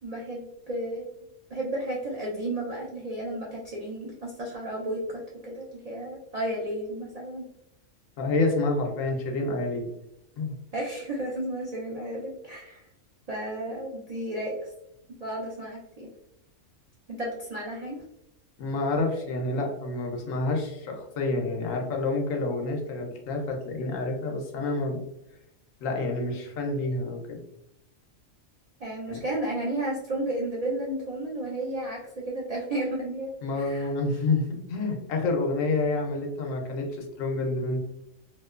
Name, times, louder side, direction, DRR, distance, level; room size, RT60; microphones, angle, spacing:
voice 1, 0.0-1.1 1.5-7.5 10.7-12.9 13.3-14.7 15.2-16.1 17.1-18.0 28.8-33.9, right 1 dB, 75° right, -4 dB, 0.3 m, -33 dB
voice 2, 8.2-9.9 10.4-10.6 18.6-25.0 25.8-27.4 29.1-29.2 33.4-37.8, left 2 dB, 85° left, 2 dB, 1.0 m, -28 dB
2.7 x 2.1 x 2.3 m, 0.81 s
omnidirectional pair, 1.4 m